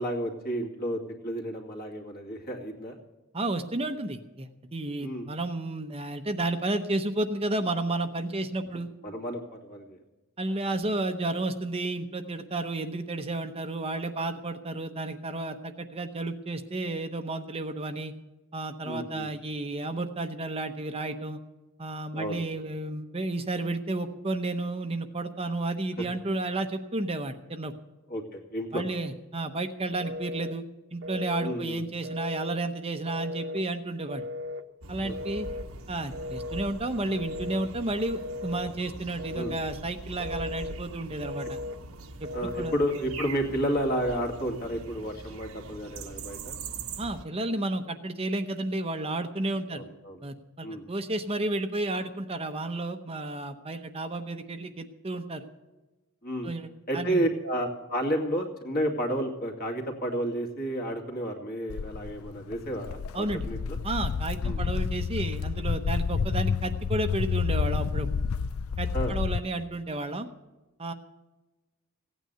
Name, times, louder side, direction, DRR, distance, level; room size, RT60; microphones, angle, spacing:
voice 1, 0.0-3.0 5.0-5.3 9.0-9.9 18.8-19.3 22.1-22.4 28.1-28.8 31.4-31.8 35.0-35.1 39.3-39.6 42.3-46.6 49.7-50.2 50.6-50.8 56.2-56.5 56.9-63.8 64.4-64.6 68.9-69.2, equal, 45° left, 2 dB, 2.4 m, -31 dB
voice 2, 3.3-8.9 10.4-18.1 18.5-21.4 21.8-27.7 28.7-30.6 30.9-34.2 34.9-35.5 35.9-41.6 42.2-42.7 47.0-49.8 50.2-55.5 56.4-57.3 63.1-63.5 63.8-68.1 68.8-70.3 70.8-70.9, right 2 dB, 30° right, 7 dB, 0.8 m, -32 dB
Telephone, 30.0-30.6 31.0-31.6 32.0-32.6 33.1-33.6 34.1-34.6 35.1-35.7 36.1-36.7 37.1-37.7 38.2-38.7 39.2-39.7 40.2-40.8 41.2-41.8 42.2-42.8, left 2 dB, 60° right, 1.0 m, -37 dB
sound 1, 34.8-47.2, right 3 dB, 80° right, 1.2 m, -42 dB
Walk footsteps, 61.7-69.4, left 6 dB, 75° left, 0.4 m, -29 dB
16.0 x 9.3 x 6.8 m, 1.1 s
head